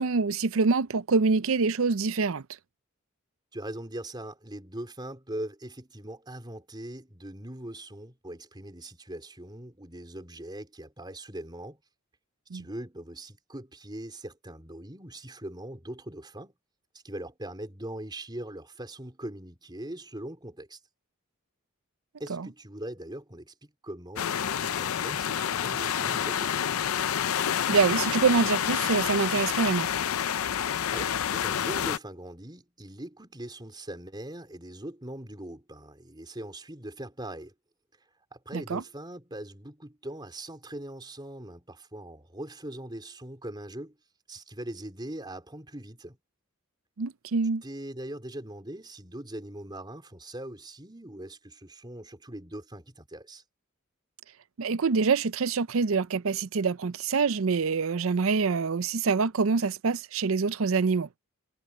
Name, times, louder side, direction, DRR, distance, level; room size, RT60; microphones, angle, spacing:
voice 1, 0.0-2.4 12.5-12.6 22.3-22.5 27.7-29.9 38.5-38.8 47.0-47.6 54.6-61.1, right 4 dB, 70° right, 0.6 m, -25 dB
voice 2, 3.5-11.8 12.5-16.5 17.0-20.8 22.2-26.8 30.9-37.5 38.3-44.0 44.3-46.2 47.6-53.4, right 1 dB, 20° right, 4.1 m, -41 dB
sound 1, 24.2-32.0, left 9 dB, 80° left, 0.5 m, -28 dB
head